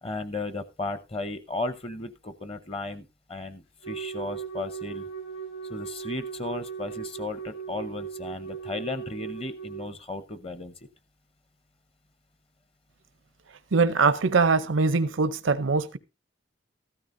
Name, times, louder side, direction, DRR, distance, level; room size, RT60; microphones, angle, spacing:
voice 1, 0.0-5.1 5.7-10.7, left 2 dB, 30° left, 0.7 m, -35 dB
Wind instrument woodwind instrument, 3.8-9.9, right 7 dB, 70° left, 3.5 m, -38 dB
voice 2, 13.7-16.0, right 4 dB, 80° right, 0.6 m, -22 dB
14.0 x 12.5 x 2.6 m
head